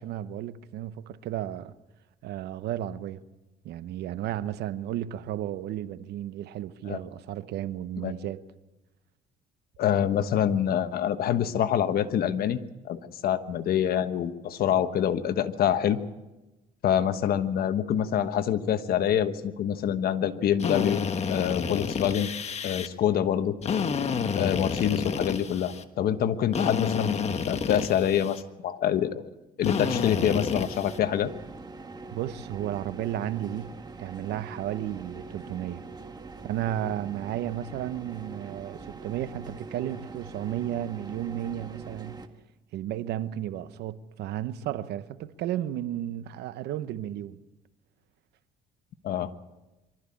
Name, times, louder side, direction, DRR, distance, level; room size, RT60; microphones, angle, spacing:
voice 1, 0.0-1.7 2.2-3.2 3.6-8.4 32.1-35.9 36.4-42.2 42.7-47.4, right 12 dB, 80° right, 1.0 m, -33 dB
voice 2, 9.8-12.6 12.8-16.0 16.8-21.0 21.3-22.3 22.6-23.6 24.3-27.2 27.5-29.2 29.6-31.3 49.0-49.3, left 9 dB, 65° left, 1.3 m, -26 dB
Drill, 20.6-22.9 23.6-25.8 26.5-28.4 29.6-31.0, left 6 dB, 40° left, 1.4 m, -30 dB
sound 1, 29.9-42.3, right 3 dB, 25° right, 1.5 m, -43 dB
23.5 x 13.5 x 8.7 m
cardioid pair, 110°, 17 cm